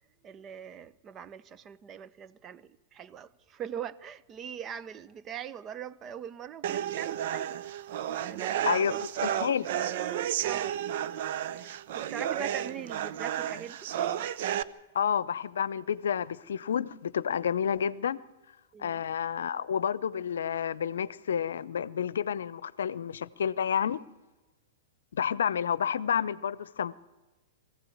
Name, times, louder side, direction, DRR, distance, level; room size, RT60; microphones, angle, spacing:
voice 1, 0.2-7.6 8.1-9.0 10.2-10.8 11.5-13.9 18.7-19.0, right 8 dB, 30° right, 0.8 m, -42 dB
sound 1, 6.6-14.6, right 10 dB, 60° right, 0.8 m, -32 dB
voice 2, 9.2-9.7 14.9-18.2 18.8-24.0 25.1-26.9, left 8 dB, 75° left, 0.7 m, -30 dB
21.5 x 15.5 x 8.7 m
hypercardioid pair, 105°, 0 cm